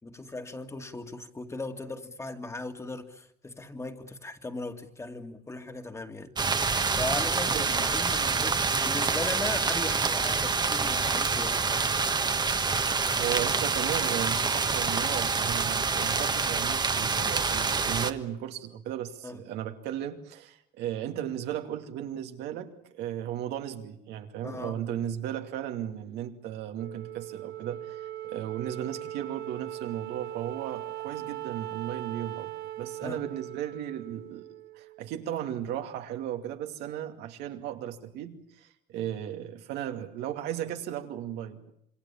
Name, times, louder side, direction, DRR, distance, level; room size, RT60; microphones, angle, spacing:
voice 1, 0.0-6.6 7.0-12.1 19.2-19.4 24.4-24.8 33.0-33.2, left 2 dB, 15° left, 2.3 m, -38 dB
sound 1, 6.4-18.1, right 4 dB, 25° right, 1.4 m, -27 dB
voice 2, 7.5-7.9 13.2-32.5 32.8-34.5 34.7-41.7, right 10 dB, 90° right, 2.6 m, -35 dB
Wind instrument woodwind instrument, 26.8-35.3, right 14 dB, 65° right, 1.1 m, -40 dB
27.5 x 23.5 x 7.3 m
cardioid pair, 110°, 17 cm